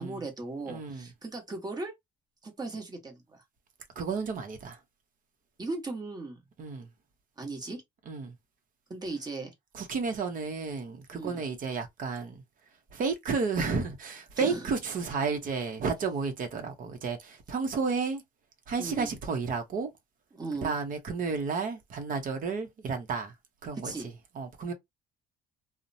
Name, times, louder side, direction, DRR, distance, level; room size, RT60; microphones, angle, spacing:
voice 1, 0.0-1.9 2.4-3.4 5.6-6.4 7.4-7.8 8.9-9.5 11.1-11.4 14.3-14.7 18.8-19.1 20.3-20.7 23.7-24.1, right 3 dB, 25° right, 1.1 m, -37 dB
voice 2, 0.7-1.1 4.0-4.8 6.6-6.9 8.1-8.3 9.7-12.4 12.9-18.2 18.7-19.9 20.6-23.3 23.6-23.9 24.4-24.7, right 5 dB, 55° right, 0.8 m, -32 dB
2.8 x 2.1 x 2.6 m
cardioid pair, 110°, 17 cm